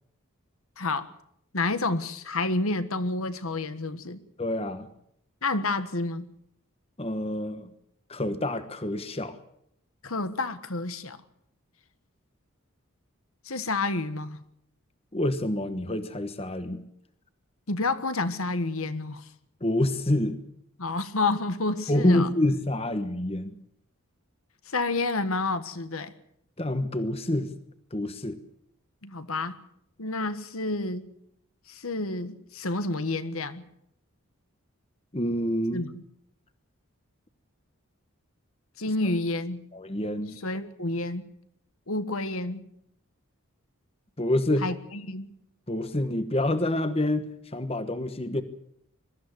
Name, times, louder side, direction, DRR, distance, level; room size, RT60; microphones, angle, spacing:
voice 1, 0.8-1.1 1.5-4.2 5.4-6.3 10.0-11.2 13.4-14.4 17.7-19.3 20.8-22.3 24.7-26.1 29.0-29.6 30.0-31.0 31.7-33.6 35.7-36.0 38.8-39.6 40.4-41.2 41.9-42.6 44.6-45.3, left 3 dB, 75° left, 11 dB, 1.5 m, -29 dB
voice 2, 4.4-4.9 7.0-7.7 8.1-9.4 15.1-16.8 19.6-20.4 21.9-23.5 26.6-27.5 27.9-28.4 35.1-35.9 39.7-40.4 44.2-44.6 45.7-48.4, left 1 dB, 25° left, 10 dB, 1.2 m, -27 dB
22.5 x 14.0 x 9.7 m, 0.74 s
head